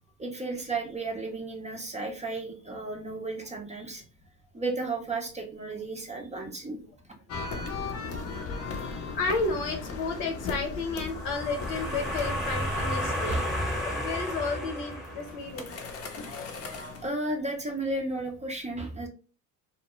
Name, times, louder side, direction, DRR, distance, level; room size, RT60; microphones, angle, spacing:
voice 1, 0.2-4.0 4.5-6.8 8.8-8.9 13.2-13.5 16.2-16.3 17.0-19.1, right 2 dB, 15° right, 1 dB, 0.5 m, -33 dB
sound 1, 7.3-13.6 14.4-17.1, left 4 dB, 35° left, 0.6 m, -38 dB
voice 2, 9.1-13.4 13.8-15.7, left 3 dB, 80° left, 2 dB, 0.9 m, -32 dB
sound 2, 10.9-15.6, equal, ahead, 0.9 m, -32 dB
2.2 x 2.1 x 2.9 m, 0.37 s
supercardioid pair, 85°, 43 cm